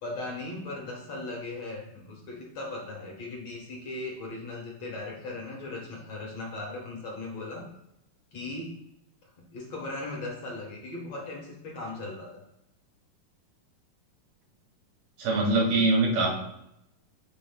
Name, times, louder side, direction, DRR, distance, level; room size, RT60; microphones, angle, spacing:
voice 1, 0.0-7.6 8.3-8.8 9.5-12.4, left 2 dB, 55° left, -1 dB, 2.3 m, -38 dB
voice 2, 15.2-16.3, right 2 dB, 85° right, -2 dB, 4.1 m, -23 dB
14.5 x 6.7 x 2.3 m, 0.83 s
omnidirectional pair, 4.1 m